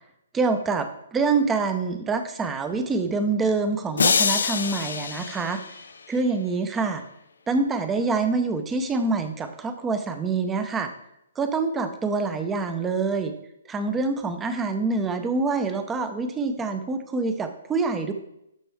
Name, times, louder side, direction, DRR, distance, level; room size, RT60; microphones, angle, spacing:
voice 1, 0.3-5.6 6.1-7.0 7.5-10.9 11.4-13.3 13.7-18.1, right 4 dB, 10° right, 8 dB, 0.6 m, -26 dB
sound 1, 4.0-6.2, left 5 dB, 80° left, 0.6 m, -25 dB
11.5 x 4.3 x 3.5 m, 0.81 s
hypercardioid pair, 160°, 0 cm